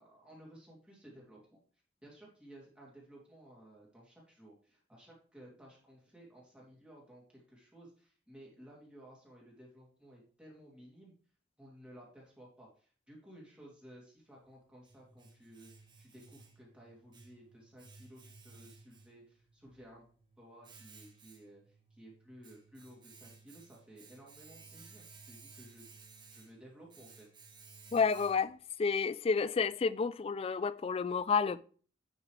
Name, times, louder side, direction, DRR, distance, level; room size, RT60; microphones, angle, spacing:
voice 1, 0.0-1.6 2.0-11.1 11.6-20.0 20.4-25.9 26.3-27.3, right 1 dB, 5° right, 2.8 m, -56 dB
Domestic sounds home sounds, 14.3-28.7, right 4 dB, 25° right, 1.3 m, -58 dB
voice 2, 27.9-31.6, left 5 dB, 30° left, 0.3 m, -30 dB
9.7 x 6.1 x 3.3 m
head